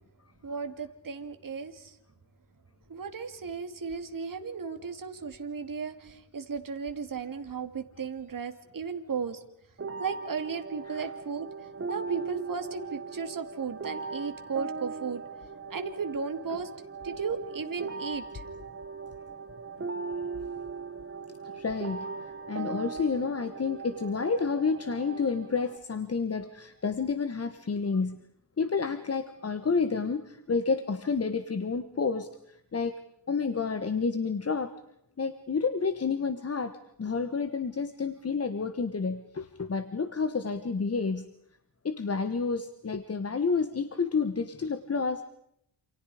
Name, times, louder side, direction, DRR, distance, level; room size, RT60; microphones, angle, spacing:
voice 1, 0.4-2.0 2.9-9.4 10.0-11.5 11.9-15.2 15.7-16.7 17.0-18.4, right 5 dB, 45° right, 6 dB, 2.7 m, -35 dB
sound 1, 9.8-25.8, right 4 dB, 30° right, 1.2 m, -39 dB
voice 2, 21.5-22.1 22.5-28.2 28.6-33.0 33.3-34.7 35.2-41.3 41.8-45.2, left 5 dB, 30° left, 11 dB, 1.3 m, -30 dB
28.5 x 28.0 x 5.0 m, 0.77 s
wide cardioid pair, 110°, 46 cm